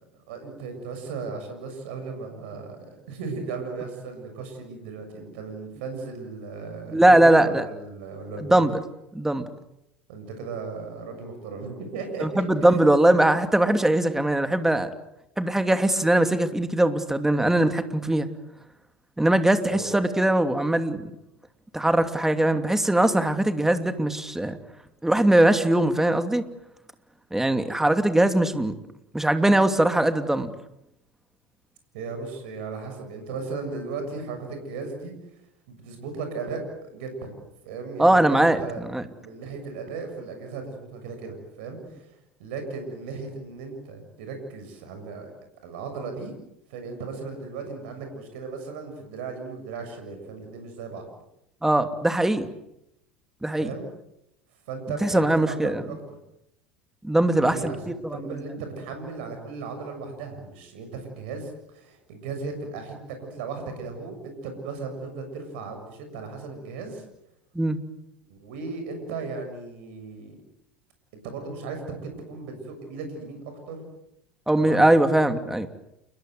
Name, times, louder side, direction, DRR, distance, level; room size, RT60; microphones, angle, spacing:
voice 1, 0.3-8.6 10.1-12.8 19.7-19.9 31.9-35.1 35.7-37.4 37.6-38.8 39.2-45.3 45.6-46.3 46.7-51.1 53.6-53.9 54.7-56.0 57.4-67.0 68.3-70.4 71.2-73.4 73.7-73.8 74.6-75.2, right 4 dB, 70° right, 6 dB, 7.0 m, -36 dB
voice 2, 6.9-7.6 8.4-8.7 9.1-9.4 12.2-14.9 15.4-18.3 19.2-21.1 21.7-24.6 25.0-26.5 27.3-28.7 29.1-30.5 38.0-38.6 38.8-39.0 51.6-52.5 53.4-53.7 55.0-55.8 57.0-58.2 67.5-67.8 74.5-75.7, right 1 dB, 5° right, 8 dB, 2.8 m, -21 dB
29.5 x 22.5 x 8.0 m, 0.84 s
hypercardioid pair, 75°, 6 cm